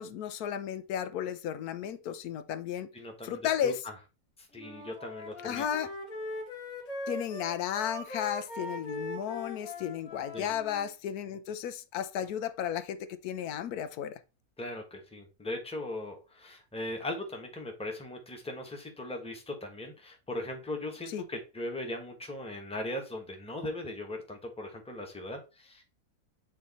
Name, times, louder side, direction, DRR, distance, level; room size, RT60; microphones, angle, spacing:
voice 1, 0.0-2.9 3.2-3.8 5.4-5.9 7.1-14.2 21.1-21.3, left 9 dB, 85° left, 1.1 m, -34 dB
voice 2, 2.9-3.7 4.4-5.7 10.3-10.5 14.6-25.8, left 1 dB, 5° left, 1.1 m, -39 dB
Wind instrument woodwind instrument, 4.5-10.9, left 1 dB, 65° left, 2.0 m, -41 dB
8.2 x 2.9 x 4.1 m
omnidirectional pair, 1.6 m